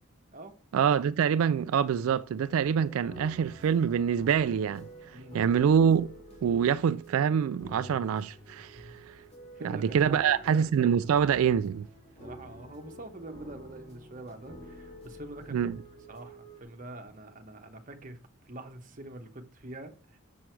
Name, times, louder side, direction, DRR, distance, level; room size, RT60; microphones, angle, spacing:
voice 1, 0.7-6.1 6.4-8.9 9.6-11.9 15.5-15.8, right 7 dB, 80° right, 0.3 m, -25 dB
sound 1, 2.5-16.6, equal, 30° left, 2.0 m, -48 dB
voice 2, 9.6-10.6 12.2-15.7 16.1-18.2 18.4-20.2, right 1 dB, 35° right, 1.0 m, -45 dB
7.0 x 6.2 x 4.5 m
head